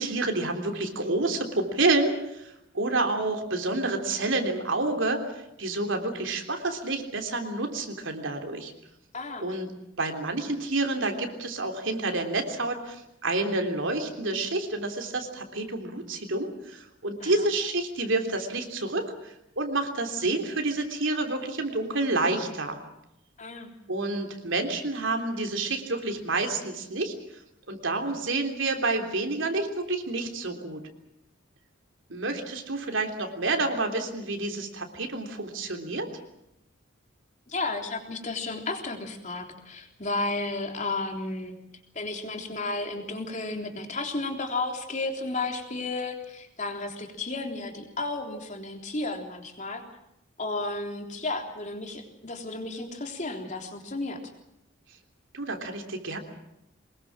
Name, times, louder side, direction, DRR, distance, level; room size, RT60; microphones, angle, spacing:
voice 1, 0.0-8.7 9.4-9.7 10.0-22.8 23.9-27.1 27.7-30.8 32.1-36.1 55.3-56.2, right 2 dB, 70° right, 4 dB, 3.4 m, -29 dB
voice 2, 9.1-9.4 17.2-17.3 23.4-23.7 37.5-41.6 42.0-49.8 50.4-54.2, left 2 dB, 40° left, 4 dB, 3.5 m, -33 dB
24.0 x 21.0 x 7.4 m, 0.83 s
head